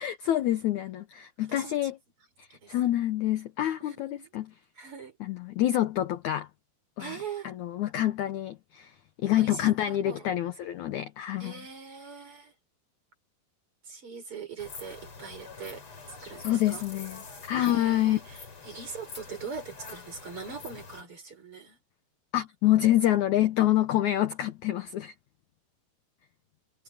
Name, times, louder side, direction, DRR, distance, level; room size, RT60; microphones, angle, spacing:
voice 1, 0.0-2.0 2.4-4.5 5.2-6.5 7.0-7.2 7.4-11.6 16.4-18.2 22.3-25.1, left 13 dB, 75° left, 1.8 m, -27 dB
voice 2, 1.4-1.9 2.5-2.8 3.8-4.3 4.8-5.2 7.0-7.5 9.3-10.3 11.4-12.5 13.8-16.9 17.6-21.8, right 5 dB, 35° right, 5.1 m, -42 dB
sound 1, 14.6-21.0, left 4 dB, 35° left, 4.1 m, -46 dB
omnidirectional pair, 4.5 m